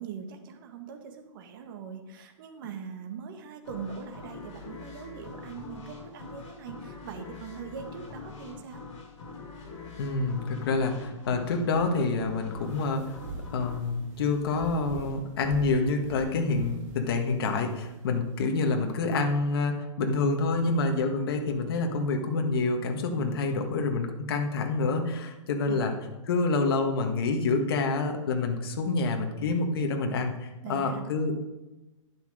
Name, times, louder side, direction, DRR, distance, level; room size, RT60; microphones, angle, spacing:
voice 1, 0.0-8.8 23.6-23.7 25.7-25.8 30.6-31.0, right 6 dB, 40° right, 5 dB, 1.8 m, -41 dB
sound 1, 3.6-15.1, left 4 dB, 65° left, 5.1 m, -44 dB
voice 2, 10.0-13.2 13.5-25.9 26.3-31.3, left 3 dB, 45° left, 4 dB, 1.6 m, -27 dB
sound 2, 12.5-18.9, right 2 dB, 15° right, 1.9 m, -44 dB
11.5 x 9.9 x 5.0 m, 1.1 s
hypercardioid pair, 165°, 17 cm